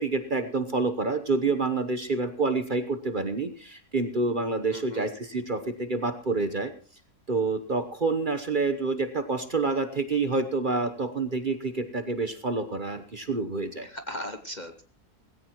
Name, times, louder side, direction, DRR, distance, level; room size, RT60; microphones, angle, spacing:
voice 1, 0.0-6.7 7.3-13.9, right 3 dB, 35° right, 9 dB, 1.0 m, -28 dB
voice 2, 4.7-5.1 13.8-14.8, left 1 dB, 35° left, 8 dB, 0.9 m, -37 dB
18.0 x 16.5 x 3.0 m, 0.40 s
omnidirectional pair, 1.6 m